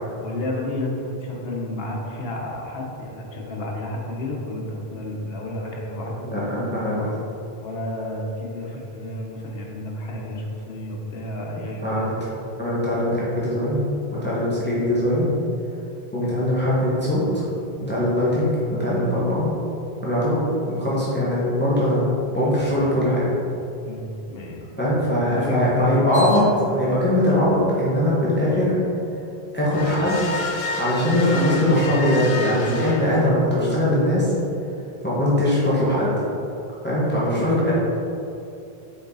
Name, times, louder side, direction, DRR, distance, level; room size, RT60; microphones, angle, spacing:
voice 1, 0.2-6.2 7.6-12.0 23.8-24.6 25.3-26.1 26.4-26.6, left 1 dB, 70° left, -1 dB, 1.3 m, -31 dB
voice 2, 6.2-7.1 11.8-15.3 16.1-17.4 17.8-19.5 19.9-23.3 24.8-28.8 29.5-30.4 30.8-34.3 35.0-36.1 36.8-37.7, left 1 dB, 10° left, -9 dB, 1.5 m, -21 dB
sound 1, 26.1-26.8 29.7-33.6, left 3 dB, 45° left, 0.5 m, -30 dB
6.6 x 4.8 x 4.0 m, 2.8 s
omnidirectional pair, 1.0 m